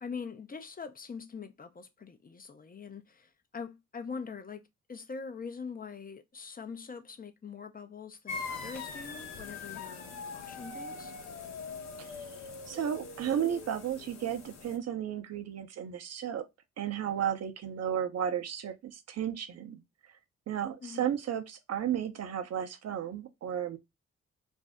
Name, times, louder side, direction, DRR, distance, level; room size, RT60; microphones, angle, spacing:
voice 1, 0.0-4.6 4.9-11.1 20.8-21.1, left 5 dB, 30° left, 0.6 m, -43 dB
sound 1, 8.3-14.8, left 4 dB, 60° left, 0.8 m, -42 dB
voice 2, 12.7-16.5 16.8-19.8 20.5-23.8, right 9 dB, 55° right, 0.7 m, -33 dB
2.5 x 2.0 x 3.5 m
supercardioid pair, 50°, 30 cm